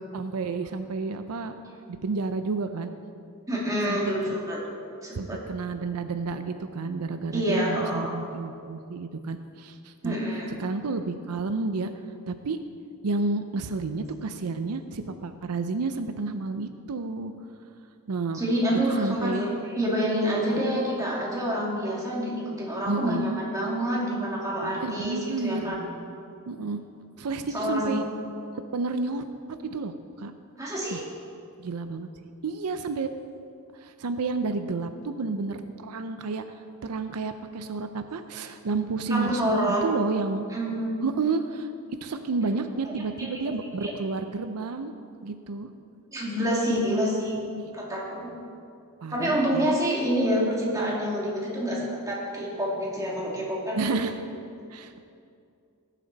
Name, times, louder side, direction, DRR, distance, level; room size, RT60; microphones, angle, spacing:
voice 1, 0.1-1.6 2.0-2.9 3.9-4.0 4.3-4.4 5.2-10.2 10.6-11.9 12.3-12.6 13.0-17.3 18.1-18.4 19.0-19.4 20.5-20.6 22.9-23.3 24.6-25.7 26.5-26.8 27.2-28.0 28.7-29.2 29.7-29.9 30.2-30.3 30.9-31.0 31.6-33.1 33.8-36.4 36.8-40.4 41.0-41.7 42.0-44.9 45.2-45.7 49.0-49.7 53.8-54.2 54.7-55.0, right 3 dB, 85° right, 9 dB, 0.5 m, -30 dB
voice 2, 3.5-4.6 5.0-5.4 7.3-8.1 10.0-10.5 18.3-25.8 27.5-28.0 30.6-31.0 39.1-39.8 40.5-41.0 42.8-42.9 43.2-43.9 46.1-47.4 47.7-48.3 49.1-54.0, equal, 15° right, -5 dB, 2.3 m, -27 dB
18.0 x 7.5 x 4.0 m, 2.5 s
head